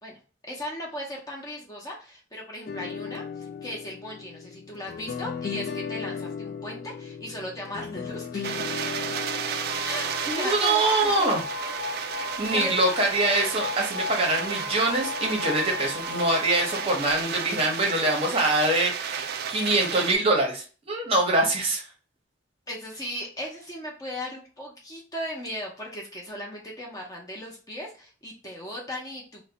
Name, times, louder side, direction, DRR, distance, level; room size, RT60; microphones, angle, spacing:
voice 1, 0.0-8.6 9.6-11.3 12.5-12.7 22.7-29.5, left 1 dB, 20° left, -2 dB, 0.6 m, -37 dB
sound 1, 2.7-10.3, left 6 dB, 50° left, 0.3 m, -36 dB
sound 2, 8.4-20.2, right 7 dB, 50° right, 0.3 m, -33 dB
sound 3, 9.7-17.2, left 3 dB, 75° left, 1.1 m, -35 dB
voice 2, 10.3-11.4 12.4-21.8, right 2 dB, 30° right, 0 dB, 0.8 m, -24 dB
2.6 x 2.1 x 3.9 m, 0.37 s
head